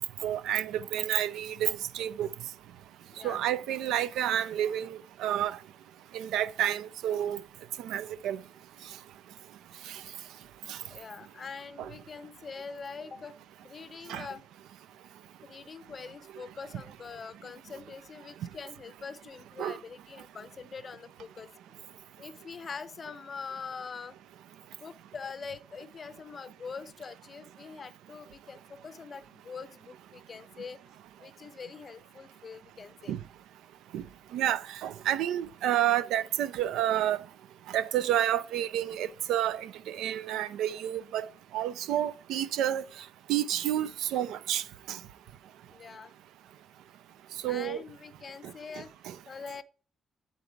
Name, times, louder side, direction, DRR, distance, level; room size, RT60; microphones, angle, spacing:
voice 1, 0.2-2.3 3.2-5.6 6.1-7.4 7.8-8.4 10.7-10.8 11.8-11.9 14.1-14.3 19.6-19.8 33.1-33.2 33.9-34.0 34.3-37.2 37.7-41.3 41.5-42.8 43.3-45.0 47.4-47.8 49.1-49.2, right 11 dB, 85° right, 0.4 m, -30 dB
voice 2, 10.9-13.3 13.6-14.4 15.4-21.5 22.2-24.2 24.8-30.8 31.2-33.1 45.7-46.1 47.5-48.9 49.3-49.6, left 5 dB, 40° left, 0.5 m, -43 dB
8.4 x 4.0 x 4.5 m
cardioid pair, 90°, 0 cm